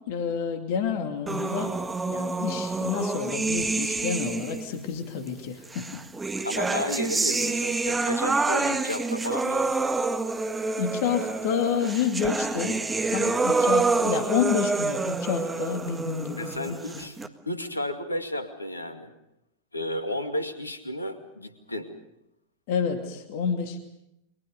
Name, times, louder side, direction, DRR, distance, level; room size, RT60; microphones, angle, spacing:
voice 1, 0.1-1.7 2.1-6.0 10.8-12.8 13.1-17.1 22.7-23.8, left 7 dB, 50° left, 6 dB, 2.5 m, -29 dB
sound 1, 1.3-4.7 5.7-17.3, right 3 dB, 10° right, 1.7 m, -27 dB
voice 2, 6.4-9.9 16.4-17.1 17.5-19.1 19.7-21.9, left 1 dB, 80° left, 8 dB, 2.3 m, -32 dB
29.0 x 23.5 x 5.3 m, 0.83 s
figure-of-eight pair, 90°, 0 cm